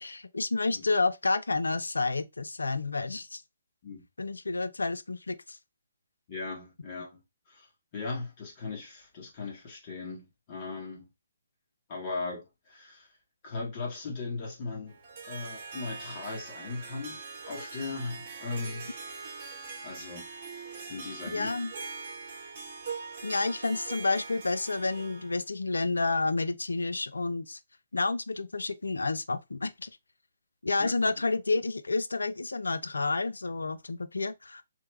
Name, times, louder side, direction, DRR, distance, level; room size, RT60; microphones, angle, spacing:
voice 1, 0.0-3.4 4.2-5.6 21.3-21.7 23.2-27.6 27.9-29.9 30.6-34.6, left 3 dB, 80° left, 0.3 m, -30 dB
voice 2, 6.3-7.2 7.5-7.7 7.9-11.1 11.9-13.1 13.4-15.0 15.3-19.0 19.8-20.3 20.9-21.5 30.8-31.2, left 3 dB, 35° left, 1.1 m, -38 dB
Harp, 14.9-25.4, right 4 dB, 45° right, 1.1 m, -42 dB
3.0 x 2.1 x 3.3 m
figure-of-eight pair, 135°, 0 cm